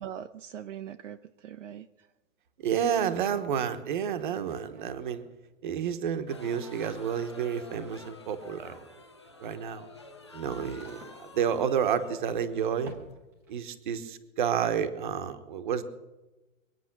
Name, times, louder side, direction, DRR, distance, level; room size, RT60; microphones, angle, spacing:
voice 1, 0.0-2.1, right 10 dB, 60° right, 8 dB, 0.7 m, -42 dB
voice 2, 2.6-5.2 5.6-8.9 9.4-9.9 10.3-13.0 13.5-15.8, right 8 dB, 35° right, 10 dB, 1.1 m, -30 dB
sound 1, 3.0-3.1 3.3-13.8, right 1 dB, 5° right, 0.7 m, -55 dB
sound 2, 6.3-13.4, left 3 dB, 20° left, 0.4 m, -50 dB
23.5 x 9.3 x 6.0 m, 1.1 s
hypercardioid pair, 170°, 42 cm